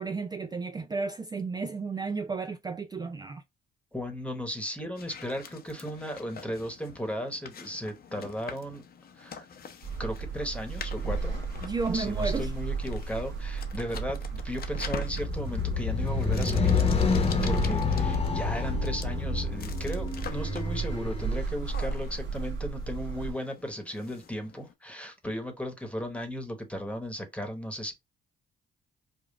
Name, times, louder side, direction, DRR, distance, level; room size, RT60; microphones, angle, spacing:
voice 1, 0.0-3.4 11.6-12.5, right 4 dB, 20° right, 0.3 m, -32 dB
voice 2, 3.9-8.8 9.1-9.5 10.0-11.4 11.9-16.8 17.3-27.9, equal, 5° left, 1.2 m, -36 dB
sound 1, 5.0-24.7, left 6 dB, 50° left, 0.7 m, -46 dB
sound 2, 9.8-23.3, right 5 dB, 65° right, 1.2 m, -34 dB
sound 3, 15.0-21.5, left 5 dB, 30° left, 1.0 m, -28 dB
5.0 x 2.4 x 2.4 m
cardioid pair, 90°, 20 cm